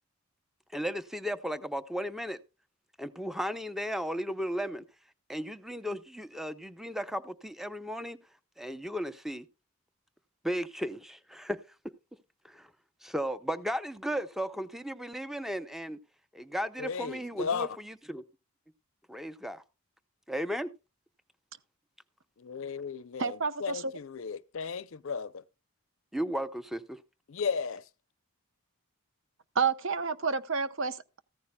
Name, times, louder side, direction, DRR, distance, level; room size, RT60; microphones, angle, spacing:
voice 1, 0.7-2.4 3.0-4.8 5.3-8.2 8.6-9.4 10.4-11.6 12.4-12.7 13.0-16.0 16.3-18.2 19.1-19.6 20.3-20.7 26.1-27.0, equal, ahead, 0.6 m, -35 dB
voice 2, 16.8-17.7 22.4-25.4 27.3-27.8, left 5 dB, 65° left, 0.5 m, -35 dB
voice 3, 23.2-23.9 29.6-31.2, right 5 dB, 60° right, 0.8 m, -30 dB
15.0 x 14.0 x 2.2 m
head